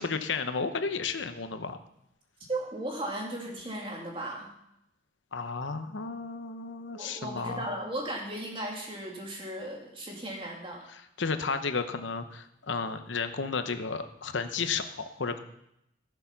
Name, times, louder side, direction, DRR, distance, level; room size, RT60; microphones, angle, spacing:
voice 1, 0.0-1.8 5.3-7.7 10.9-15.4, left 4 dB, 75° left, 9 dB, 0.8 m, -33 dB
voice 2, 2.5-4.5 6.9-10.8, right 1 dB, 25° right, -1 dB, 2.4 m, -36 dB
15.5 x 6.9 x 5.8 m, 0.80 s
head